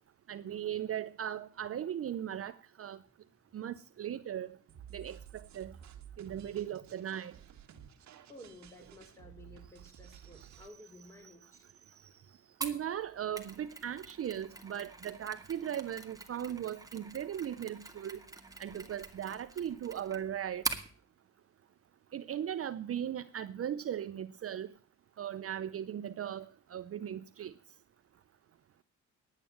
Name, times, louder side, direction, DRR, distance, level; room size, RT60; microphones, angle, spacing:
voice 1, 0.3-3.0 3.5-4.6 4.9-5.7 6.2-7.3 11.2-11.3 12.6-18.2 18.6-20.6 22.1-24.7 25.2-27.5, right 10 dB, 50° right, 0.7 m, -38 dB
sound 1, 4.7-10.7, right 9 dB, 65° right, 1.8 m, -53 dB
voice 2, 8.3-11.6, left 1 dB, 10° left, 5.1 m, -54 dB
Mechanisms, 12.6-20.9, right 3 dB, 10° right, 1.9 m, -44 dB
10.5 x 9.2 x 7.1 m
cardioid pair, 90°, 30 cm